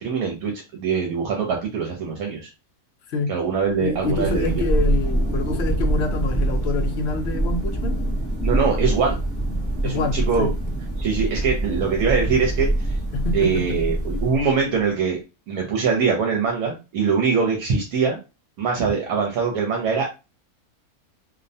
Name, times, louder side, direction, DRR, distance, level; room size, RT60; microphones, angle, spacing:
voice 1, 0.0-2.4 3.3-4.6 8.4-9.2 9.8-10.5 11.0-13.0 13.3-15.2 15.5-18.2 18.6-20.2, right 5 dB, 80° right, 0 dB, 1.1 m, -23 dB
Thunder, 3.7-14.7, right 1 dB, 10° right, 1.0 m, -25 dB
voice 2, 3.8-8.0 9.8-10.5 13.1-13.8, left 3 dB, 70° left, 6 dB, 0.6 m, -26 dB
2.5 x 2.1 x 2.6 m, 0.28 s
omnidirectional pair, 1.6 m